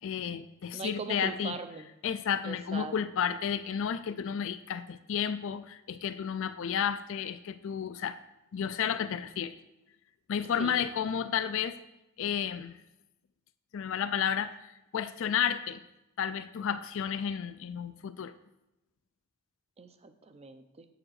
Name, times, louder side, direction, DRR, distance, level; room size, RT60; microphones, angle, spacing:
voice 1, 0.0-1.5 2.0-8.2 8.5-9.6 10.3-11.8 12.2-12.8 13.7-15.8 16.2-18.3, left 8 dB, 65° left, 12 dB, 0.4 m, -32 dB
voice 2, 0.7-1.9 2.4-2.9 10.6-10.8 19.8-20.9, right 4 dB, 30° right, 10 dB, 0.5 m, -40 dB
7.4 x 4.9 x 6.3 m, 0.91 s
head